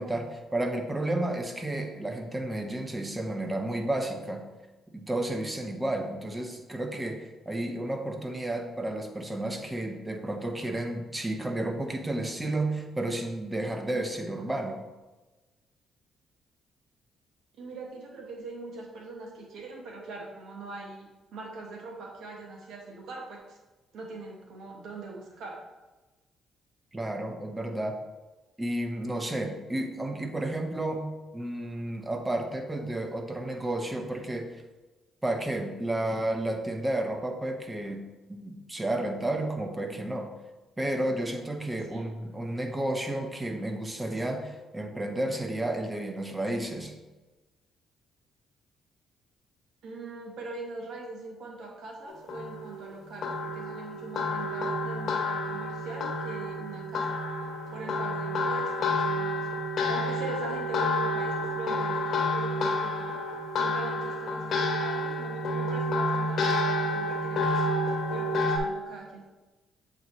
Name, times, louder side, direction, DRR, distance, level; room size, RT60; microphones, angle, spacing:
voice 1, 0.0-4.4 4.9-14.8 26.9-28.0 28.6-31.1 31.3-34.5 35.2-38.0 38.3-40.3 40.8-46.9, right 1 dB, 15° right, 4 dB, 0.9 m, -32 dB
voice 2, 17.6-23.6 23.9-25.6 41.9-42.1 49.8-57.2 57.7-63.2 63.5-69.2, right 3 dB, 75° right, 0 dB, 1.3 m, -42 dB
sound 1, 52.1-68.6, left 1 dB, 65° left, 0.9 m, -29 dB
7.6 x 4.1 x 3.1 m, 1.2 s
cardioid pair, 90°, 0 cm